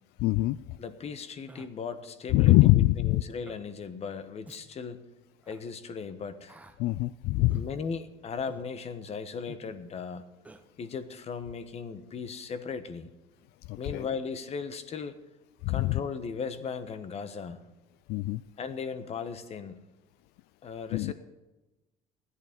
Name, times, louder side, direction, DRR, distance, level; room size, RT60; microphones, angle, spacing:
voice 1, 0.2-0.8 2.3-3.2 6.8-7.7 13.7-14.1 15.6-16.0 18.1-18.4 20.9-21.1, left 18 dB, 75° left, 17 dB, 0.4 m, -23 dB
voice 2, 0.8-5.0 5.5-6.5 7.5-10.2 10.8-13.1 13.8-15.2 15.7-17.6 18.6-19.8 20.6-21.1, left 5 dB, 40° left, 12 dB, 1.3 m, -37 dB
Human voice, 1.5-1.7 2.5-2.7 3.4-3.6 4.4-4.6 5.4-5.6 6.5-6.8 7.5-7.7 8.5-8.7 9.5-9.7 10.4-10.6, right 2 dB, 10° right, 1.0 m, -49 dB
16.0 x 11.5 x 5.3 m, 1.1 s
cardioid pair, 115°, 17 cm